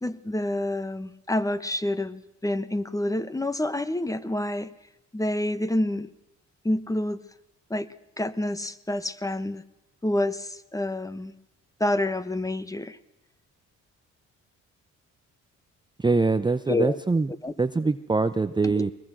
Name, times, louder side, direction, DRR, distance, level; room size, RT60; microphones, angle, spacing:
voice 1, 0.0-4.7 5.1-6.1 6.6-7.2 7.7-7.9 8.2-9.6 10.0-11.3 11.8-13.0 16.7-17.0 17.4-17.5 18.6-18.9, left 1 dB, 10° left, 14 dB, 1.1 m, -28 dB
voice 2, 16.0-17.3 17.6-18.9, right 3 dB, 15° right, 11 dB, 0.7 m, -23 dB
22.0 x 21.5 x 6.2 m, 0.95 s
cardioid pair, 90°, 30 cm